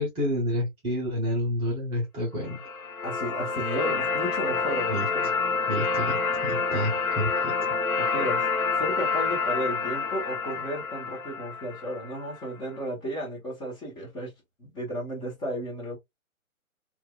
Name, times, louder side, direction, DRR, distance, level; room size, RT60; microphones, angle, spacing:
voice 1, 0.0-2.6 4.9-5.1 5.7-7.7, equal, 15° right, 1.2 m, -29 dB
sound 1, 2.4-12.5, left 4 dB, 75° left, 1.2 m, -28 dB
voice 2, 3.0-5.3 8.0-8.5 8.8-14.3 14.6-16.0, equal, 10° left, 1.5 m, -33 dB
4.6 x 2.9 x 2.4 m
figure-of-eight pair, 135°, 42 cm